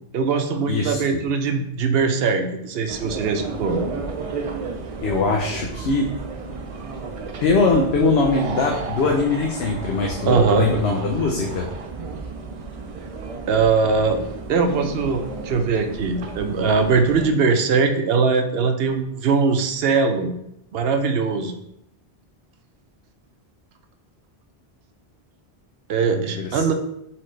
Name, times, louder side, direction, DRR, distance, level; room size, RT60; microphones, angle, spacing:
voice 1, 0.1-3.8 10.3-10.7 13.5-14.2 14.5-20.3 20.7-21.6 25.9-26.7, right 5 dB, 70° right, 6 dB, 0.8 m, -21 dB
voice 2, 0.7-1.2 5.0-6.1 7.4-11.7 26.1-26.7, left 3 dB, 75° left, 1 dB, 0.8 m, -22 dB
sound 1, 2.9-17.3, right 4 dB, 50° right, 0.4 m, -33 dB
4.3 x 3.9 x 3.1 m, 0.77 s
omnidirectional pair, 1.1 m